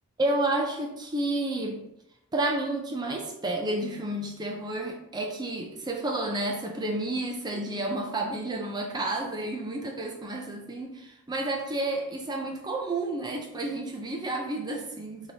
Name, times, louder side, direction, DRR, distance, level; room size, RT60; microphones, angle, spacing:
voice 1, 0.2-1.8 2.3-15.3, right 2 dB, 20° right, 2 dB, 0.4 m, -30 dB
4.5 x 2.8 x 2.7 m, 0.82 s
head